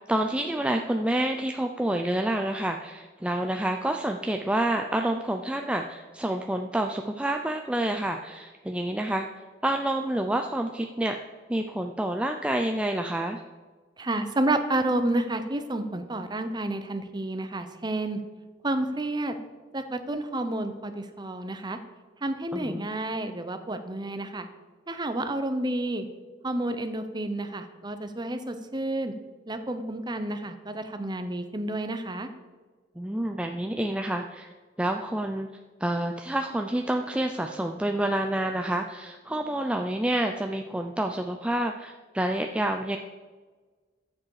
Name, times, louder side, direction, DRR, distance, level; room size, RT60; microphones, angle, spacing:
voice 1, 0.0-9.3 9.6-11.2 11.5-13.4 22.5-22.9 33.0-34.5 34.8-35.5 35.8-43.0, right 1 dB, 5° right, 4 dB, 0.5 m, -28 dB
voice 2, 14.0-18.2 18.6-19.4 19.7-21.8 22.2-24.5 24.9-26.1 26.4-29.1 29.5-32.3, right 1 dB, 25° right, 9 dB, 0.9 m, -30 dB
14.5 x 7.6 x 4.9 m, 1.4 s
head